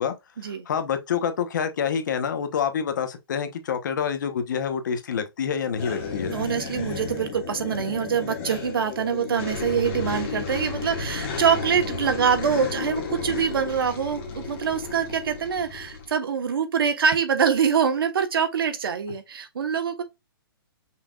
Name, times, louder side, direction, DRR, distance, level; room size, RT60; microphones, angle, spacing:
voice 1, 0.0-6.4, left 7 dB, 50° left, 1.0 m, -27 dB
sound 1, 5.7-16.1, left 4 dB, 35° left, 1.7 m, -33 dB
voice 2, 6.3-20.0, right 7 dB, 70° right, 1.2 m, -24 dB
5.8 x 3.6 x 2.4 m
hypercardioid pair, 170°, 12 cm